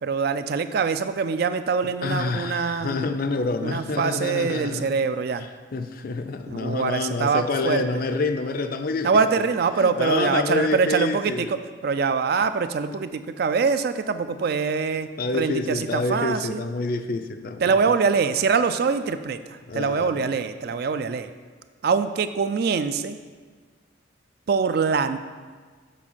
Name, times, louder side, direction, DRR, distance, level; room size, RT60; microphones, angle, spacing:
voice 1, 0.0-3.0 3.6-5.5 6.5-7.8 9.0-15.1 15.3-16.6 17.6-19.4 19.7-21.3 21.8-23.2 24.5-25.2, right 5 dB, 50° right, 11 dB, 0.3 m, -24 dB
voice 2, 2.0-4.9 5.7-9.5 9.8-11.5 15.2-17.8 19.7-20.2, left 3 dB, 45° left, 8 dB, 0.4 m, -27 dB
7.4 x 4.3 x 5.6 m, 1.5 s
head